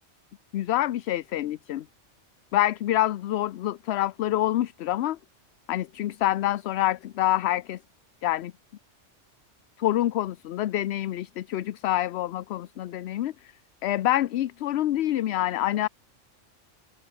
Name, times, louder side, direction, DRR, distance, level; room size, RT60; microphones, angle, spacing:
voice 1, 0.5-1.9 2.5-5.2 5.7-7.8 8.2-8.5 9.8-13.5 13.8-15.9, left 13 dB, 65° left, 0.8 m, -26 dB
open air
omnidirectional pair, 1.3 m